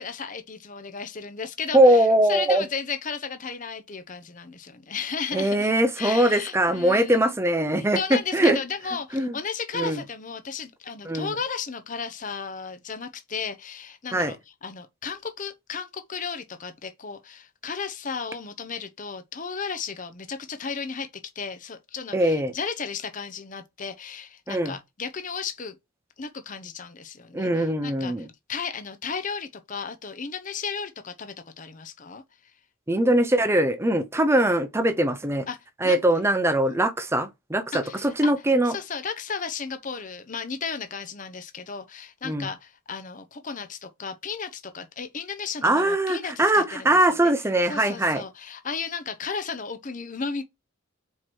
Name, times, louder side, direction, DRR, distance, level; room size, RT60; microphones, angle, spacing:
voice 1, 0.0-7.3 7.9-14.4 14.6-21.1 21.4-25.7 26.2-32.2 35.5-35.6 35.8-36.0 36.7-36.8 37.7-38.3 38.6-47.3 47.6-50.4, left 5 dB, 35° left, 0.7 m, -34 dB
voice 2, 1.7-2.6 5.3-8.6 9.1-9.4 9.7-10.0 11.1-11.3 14.1-14.3 22.1-22.5 24.5-24.8 27.3-28.3 32.9-35.4 35.8-38.8 42.2-42.5 45.6-48.2, right 1 dB, 10° right, 0.6 m, -21 dB
4.6 x 4.5 x 4.4 m
head